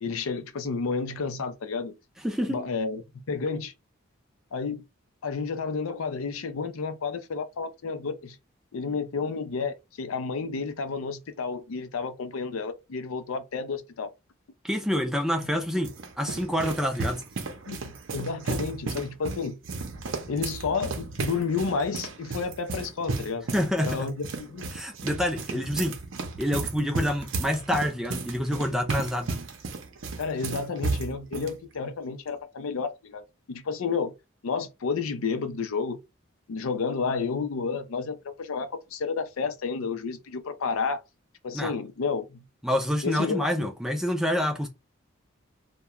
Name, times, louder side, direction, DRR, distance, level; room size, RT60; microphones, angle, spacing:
voice 1, 0.0-2.0 2.5-3.0 3.3-3.7 4.5-4.8 5.2-8.4 8.7-14.1 17.7-19.6 20.3-23.5 23.8-24.7 30.2-34.1 34.4-36.0 36.5-41.0 41.4-42.4 43.0-43.7, left 5 dB, 85° left, 0.5 m, -31 dB
voice 2, 2.2-2.6 14.6-17.2 23.5-24.1 24.7-26.0 26.4-29.4 41.5-41.7 42.6-44.7, equal, ahead, 0.4 m, -27 dB
sound 1, 15.4-31.5, right 3 dB, 65° right, 0.6 m, -34 dB
2.3 x 2.2 x 2.9 m
head